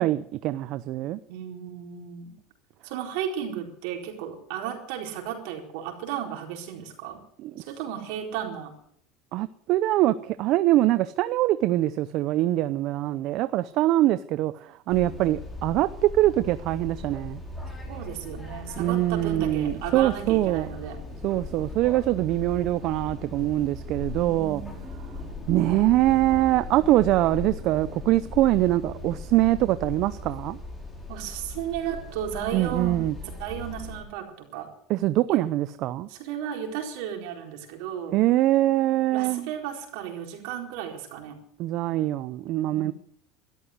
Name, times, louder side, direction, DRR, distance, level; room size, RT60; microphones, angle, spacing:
voice 1, 0.0-1.2 7.4-7.7 9.3-17.4 18.8-20.7 21.2-24.6 25.5-30.6 32.5-33.1 34.9-36.1 38.1-39.5 41.6-42.9, right 15 dB, 55° right, 14 dB, 0.7 m, -23 dB
voice 2, 1.3-2.3 2.8-7.2 7.7-8.7 17.9-21.0 24.2-24.9 26.8-27.0 31.1-33.0 33.4-34.7 35.3-35.4 36.1-38.2 39.1-41.4 42.7-42.9, right 9 dB, 70° right, 2 dB, 4.3 m, -34 dB
sound 1, 14.9-34.0, left 2 dB, 10° left, 5.2 m, -38 dB
13.0 x 13.0 x 8.0 m, 0.67 s
supercardioid pair, 125°, 0 cm